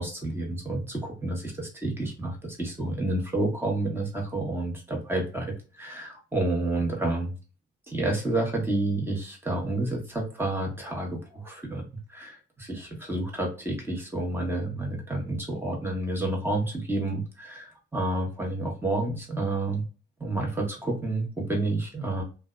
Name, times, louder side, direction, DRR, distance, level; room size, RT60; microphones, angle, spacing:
voice 1, 0.0-7.3 7.9-11.8 12.1-19.8 20.2-22.2, right 2 dB, 10° right, -1 dB, 1.2 m, -30 dB
2.6 x 2.2 x 2.4 m, 0.35 s
cardioid pair, 90°, 20 cm